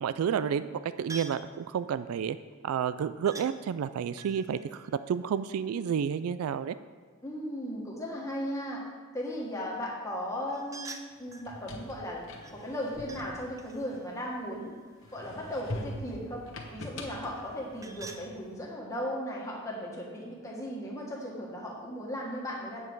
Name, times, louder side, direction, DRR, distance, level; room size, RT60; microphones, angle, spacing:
voice 1, 0.0-2.4 2.6-6.7, right 7 dB, 90° right, 13 dB, 0.3 m, -30 dB
sound 1, 1.1-1.5 3.3-3.5 4.1-5.9 10.5-11.5 12.4-13.3 13.6-15.5 17.3-18.3, right 3 dB, 15° right, 0.4 m, -47 dB
voice 2, 7.2-8.8 9.1-12.2 12.5-14.8 15.1-16.4 16.7-22.8, equal, 15° left, -3 dB, 1.6 m, -36 dB
sound 2, 11.3-14.5 15.0-18.4, left 1 dB, 60° left, 1.2 m, -43 dB
8.9 x 7.4 x 4.7 m, 1.5 s
head